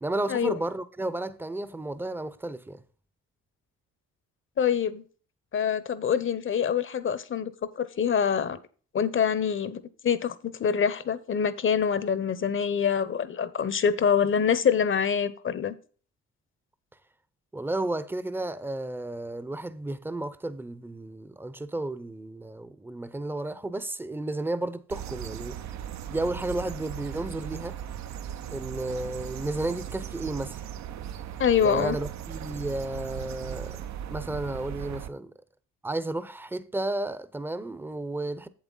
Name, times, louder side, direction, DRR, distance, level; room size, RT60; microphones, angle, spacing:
voice 1, 0.0-2.8 17.5-25.6 26.1-27.8 28.5-30.6 31.6-33.8 34.1-35.3 35.8-38.5, right 2 dB, 5° right, 0.6 m, -32 dB
voice 2, 4.6-5.0 5.5-8.6 8.9-15.8 31.4-32.0, left 7 dB, 40° left, 0.8 m, -25 dB
sound 1, 24.9-35.1, right 10 dB, 65° right, 0.6 m, -38 dB
7.9 x 7.3 x 3.9 m
cardioid pair, 90°, 30 cm